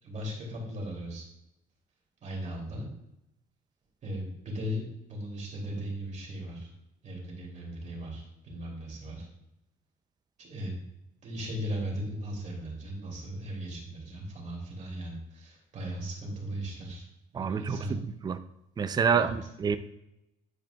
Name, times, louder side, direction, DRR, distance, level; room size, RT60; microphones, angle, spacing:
voice 1, 0.0-1.2 2.2-2.9 4.0-4.8 5.1-6.7 7.0-9.3 10.4-10.7 11.2-17.1 17.3-18.0 19.1-19.3, equal, 45° right, -2 dB, 2.6 m, -37 dB
voice 2, 17.3-17.8 18.2-18.4 18.8-19.8, right 6 dB, 25° right, 11 dB, 0.4 m, -27 dB
10.5 x 4.9 x 2.3 m, 0.86 s
cardioid pair, 110°, 17 cm